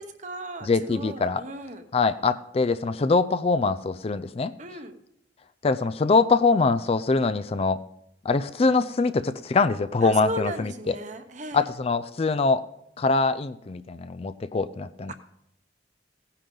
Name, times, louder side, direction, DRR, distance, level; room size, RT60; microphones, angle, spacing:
voice 1, 0.0-1.8 4.6-4.9 10.0-11.7 15.1-15.2, right 1 dB, 40° right, 8 dB, 1.0 m, -36 dB
voice 2, 0.6-1.4 1.9-4.5 5.6-7.8 8.2-11.0 11.5-12.6 13.0-15.1, left 4 dB, 30° left, 12 dB, 0.4 m, -23 dB
17.0 x 10.0 x 3.9 m, 0.79 s
head